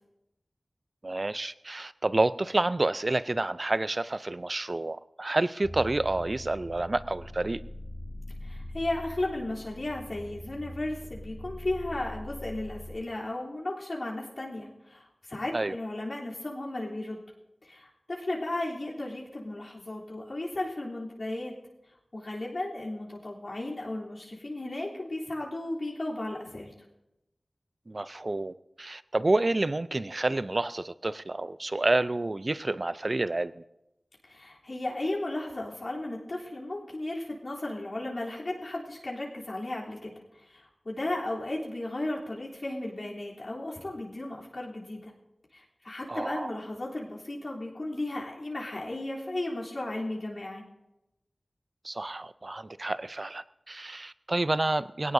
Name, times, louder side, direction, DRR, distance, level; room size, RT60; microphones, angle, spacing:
voice 1, 1.0-7.6 15.5-15.8 27.9-33.6 46.1-46.5 51.8-55.1, right 2 dB, 50° right, 15 dB, 0.5 m, -29 dB
sound 1, 5.6-13.0, equal, ahead, 2.8 m, -42 dB
voice 2, 8.4-17.2 17.6-21.5 22.1-26.7 34.2-45.1 45.5-50.6, left 1 dB, 60° left, -5 dB, 3.4 m, -35 dB
20.5 x 17.5 x 2.7 m, 0.94 s
wide cardioid pair, 45°, 0 cm